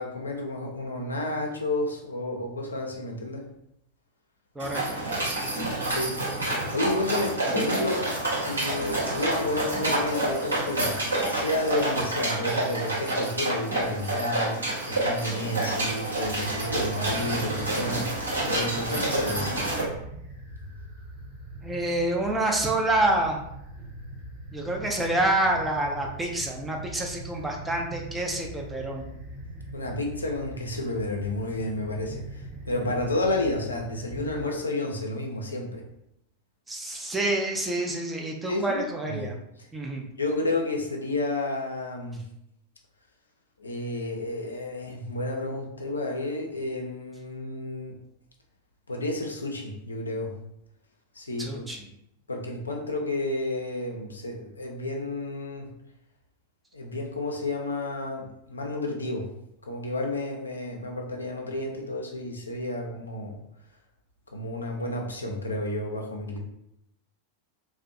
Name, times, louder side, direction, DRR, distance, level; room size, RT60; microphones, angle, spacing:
voice 1, 0.0-3.5 5.9-6.5 6.7-11.0 11.3-18.2 18.5-19.6 29.7-35.8 38.5-39.2 39.6-39.7 40.2-42.2 43.6-48.0 48.9-50.3 51.1-51.6 52.3-55.7 56.7-59.3 59.7-63.4 64.3-66.4, left 2 dB, 75° left, 1 dB, 0.4 m, -31 dB
voice 2, 4.6-5.2 21.6-23.4 24.5-29.1 36.7-39.4 39.7-40.1 51.4-51.8, right 1 dB, 10° right, 0 dB, 0.4 m, -27 dB
sound 1, 4.6-19.8, right 2 dB, 80° right, 0.9 m, -28 dB
sound 2, 16.1-34.4, right 1 dB, 50° right, 1.0 m, -41 dB
2.5 x 2.0 x 2.5 m, 0.79 s
figure-of-eight pair, 90°, 0 cm